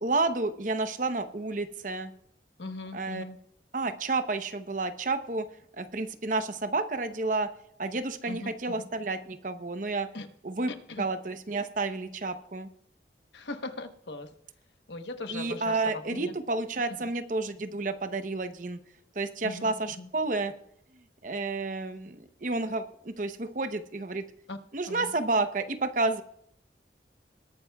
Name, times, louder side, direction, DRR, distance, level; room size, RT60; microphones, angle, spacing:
voice 1, 0.0-2.1 2.9-3.2 3.7-5.5 5.8-7.5 7.8-10.1 10.4-10.7 11.0-12.7 15.3-18.8 19.1-20.5 20.9-24.3 24.7-26.2, right 3 dB, 45° right, 9 dB, 0.8 m, -30 dB
voice 2, 2.6-3.4 8.3-8.9 10.1-10.3 10.7-11.0 13.3-14.3 14.9-16.3 17.0-17.1 19.4-20.1 24.5-24.6 24.9-25.1, left 2 dB, 85° left, 8 dB, 1.1 m, -39 dB
20.5 x 12.0 x 2.3 m, 0.72 s
head